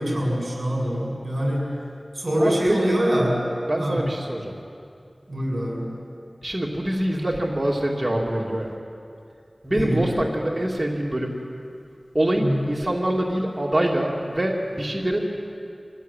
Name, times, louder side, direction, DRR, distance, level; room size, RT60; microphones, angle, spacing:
voice 1, 0.0-1.7 2.1-3.5 3.8-4.0 5.3-5.9 9.7-10.1 12.3-12.6, equal, 50° right, -1 dB, 7.6 m, -24 dB
voice 2, 2.4-3.0 3.7-4.5 6.4-8.7 9.6-11.4 12.1-15.2, right 1 dB, 30° right, -2 dB, 2.7 m, -25 dB
25.0 x 16.5 x 9.2 m, 2.5 s
wide cardioid pair, 50°, 0 cm